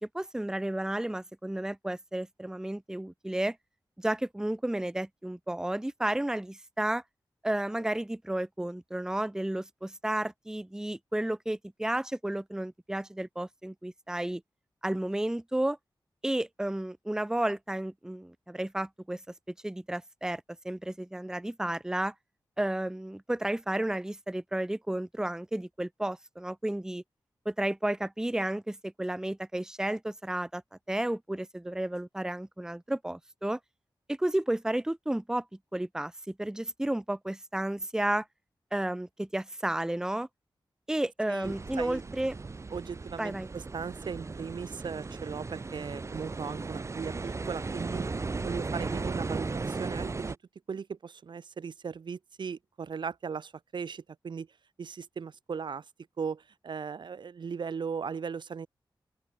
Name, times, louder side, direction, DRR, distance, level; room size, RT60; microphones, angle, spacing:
voice 1, 0.1-3.6 4.0-7.0 7.4-14.4 14.8-15.8 16.2-19.2 19.6-22.1 22.6-27.0 27.5-30.6 30.9-33.6 34.1-35.4 35.7-38.3 38.7-40.3 40.9-42.4 43.2-43.5, right 1 dB, 5° right, 0.7 m, -32 dB
voice 2, 41.3-42.0 42.7-48.0 48.4-50.4 50.7-54.5 54.8-55.8 56.2-58.7, right 6 dB, 70° right, 0.8 m, -38 dB
sound 1, 41.4-50.3, right 3 dB, 35° right, 0.9 m, -36 dB
open air
wide cardioid pair, 135°, 8 cm